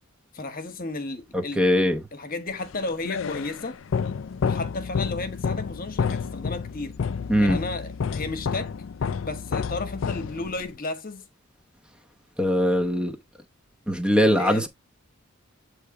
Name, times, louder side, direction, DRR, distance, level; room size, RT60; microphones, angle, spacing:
voice 1, 0.3-3.8 4.4-7.0 7.4-8.8 9.2-11.3 14.2-14.7, left 2 dB, 40° left, 1.2 m, -33 dB
voice 2, 1.3-2.0 7.3-7.6 12.4-13.1 13.9-14.7, equal, 5° right, 0.9 m, -21 dB
sound 1, 2.6-10.8, left 6 dB, 65° left, 0.4 m, -30 dB
8.2 x 3.3 x 4.7 m
head